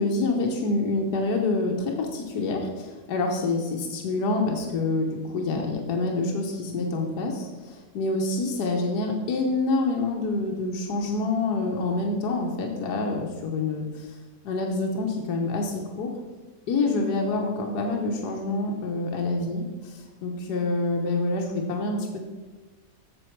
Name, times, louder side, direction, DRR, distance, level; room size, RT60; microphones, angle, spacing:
voice 1, 0.0-14.1 14.4-16.1 16.7-22.2, left 3 dB, 70° left, 1 dB, 1.5 m, -27 dB
7.9 x 6.7 x 4.6 m, 1.2 s
omnidirectional pair, 1.8 m